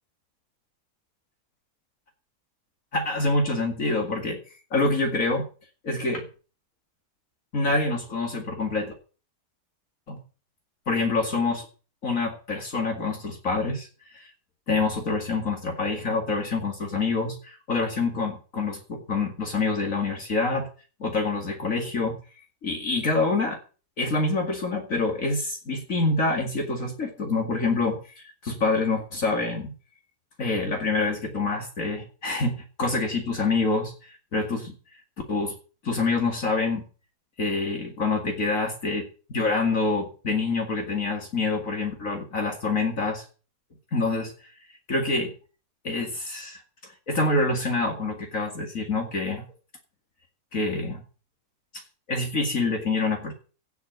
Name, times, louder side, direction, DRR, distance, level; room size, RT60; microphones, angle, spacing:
voice 1, 2.9-4.4 4.7-5.4 5.8-6.3 7.5-8.9 10.1-10.2 10.9-11.7 12.0-14.3 14.7-20.7 21.0-22.2 22.6-23.6 24.0-29.7 30.4-34.7 35.3-35.5 35.8-36.8 37.4-43.2 43.9-44.5 44.9-45.3 45.8-49.4 50.5-51.0 51.7-51.8 52.1-53.3, left 3 dB, 65° left, 2 dB, 2.6 m, -26 dB
16.0 x 6.0 x 7.9 m, 0.37 s
omnidirectional pair, 1.5 m